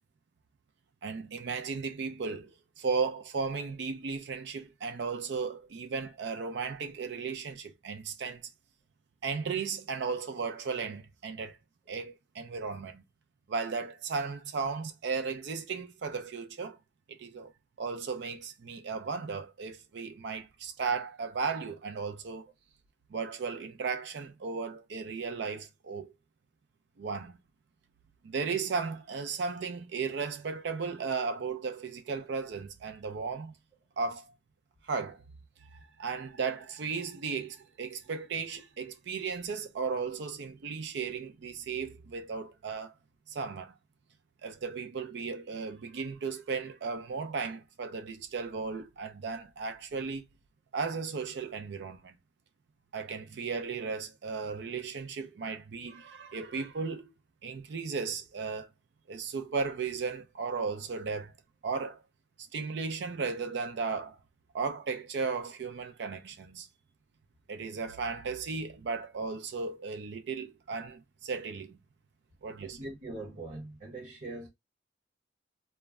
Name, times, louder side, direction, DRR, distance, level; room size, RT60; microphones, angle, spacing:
voice 1, 1.0-2.5 2.8-8.4 9.2-11.6 11.9-13.0 13.5-16.8 17.1-17.5 17.8-22.5 23.1-26.1 27.0-27.4 28.2-33.5 34.0-34.3 34.8-35.2 35.7-42.9 43.3-43.7 44.4-50.2 50.7-52.2 52.9-57.1 57.4-58.7 59.1-61.3 61.6-62.0 62.5-64.2 64.5-66.7 67.5-71.8 72.4-72.8, right 5 dB, 65° right, 0.4 m, -35 dB
voice 2, 72.6-74.5, right 2 dB, 45° right, 0.8 m, -42 dB
2.2 x 2.1 x 3.4 m
head